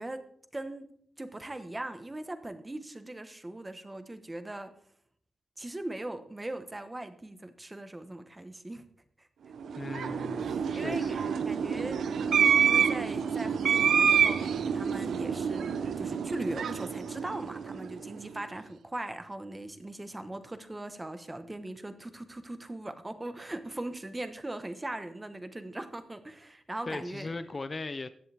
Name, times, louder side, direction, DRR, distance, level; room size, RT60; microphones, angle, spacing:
voice 1, 0.0-4.7 5.6-8.8 9.2-9.3 10.4-11.2 11.4-27.3, right 1 dB, 15° right, 1.2 m, -40 dB
sound 1, 9.6-18.1, right 7 dB, 75° right, 0.7 m, -27 dB
voice 2, 9.7-11.3 26.9-28.1, left 3 dB, 30° left, 0.5 m, -39 dB
15.5 x 11.0 x 3.5 m
wide cardioid pair, 125°, 0 cm